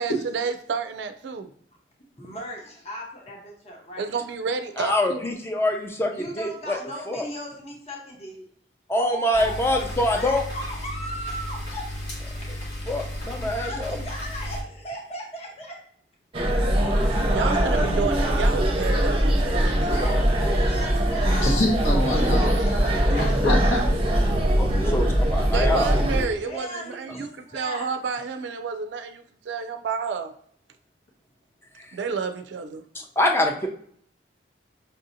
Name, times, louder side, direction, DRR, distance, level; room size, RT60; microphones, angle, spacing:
voice 1, 0.0-1.5 4.0-5.2 17.0-20.0 25.4-30.3 31.9-32.9, right 5 dB, 80° right, 0.4 m, -30 dB
voice 2, 2.2-4.2 6.1-8.5 9.0-11.8 13.3-15.8 19.7-21.6 21.9-23.2 24.8-25.0 26.4-27.9, right 1 dB, 35° left, 0.9 m, -36 dB
voice 3, 4.8-6.8 7.1-7.3 8.9-10.4 12.9-14.0 24.6-25.0 25.3-26.0 31.8-31.9 32.9-33.7, left 1 dB, 15° left, 0.4 m, -25 dB
sound 1, 9.3-14.6, equal, 60° left, 1.3 m, -34 dB
sound 2, 16.3-26.2, equal, 30° right, 0.6 m, -22 dB
voice 4, 21.4-24.3 24.6-25.1, left 1 dB, 80° left, 1.0 m, -27 dB
5.4 x 2.7 x 2.5 m
head